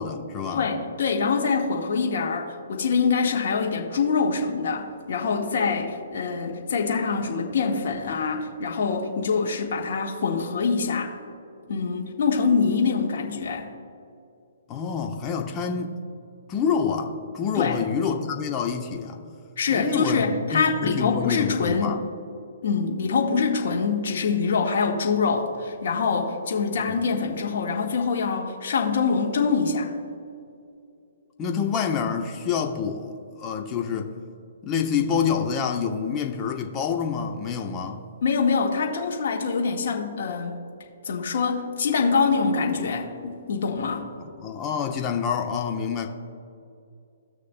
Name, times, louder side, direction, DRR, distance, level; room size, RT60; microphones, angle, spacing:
voice 1, 0.0-0.7 14.7-16.0 16.5-19.2 19.7-22.0 31.4-33.1 33.4-34.1 34.6-38.0 44.2-46.1, left 6 dB, 25° left, 3 dB, 1.0 m, -27 dB
voice 2, 0.5-11.1 11.7-13.7 17.6-17.8 19.6-22.0 22.6-29.9 38.2-40.5 41.0-44.1, left 5 dB, 60° left, 0 dB, 1.5 m, -24 dB
17.5 x 6.5 x 2.2 m, 2.5 s
figure-of-eight pair, 130°, 0 cm